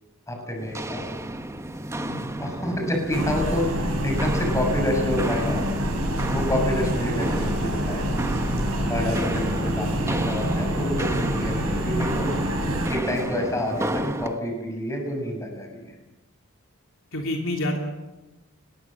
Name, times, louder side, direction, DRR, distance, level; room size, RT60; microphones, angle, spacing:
voice 1, 0.3-1.0 2.4-5.6 6.3-8.0 8.9-12.3 12.9-15.9, left 1 dB, 15° left, 2 dB, 6.7 m, -28 dB
Walk footsteps, 0.6-14.4, right 1 dB, 15° right, 1.0 m, -32 dB
sound 1, 3.1-12.9, equal, 80° right, 6.4 m, -26 dB
voice 2, 6.3-6.6 8.8-9.1 17.1-17.8, left 1 dB, 65° left, 1 dB, 3.3 m, -29 dB
25.0 x 21.0 x 7.6 m, 1.1 s
head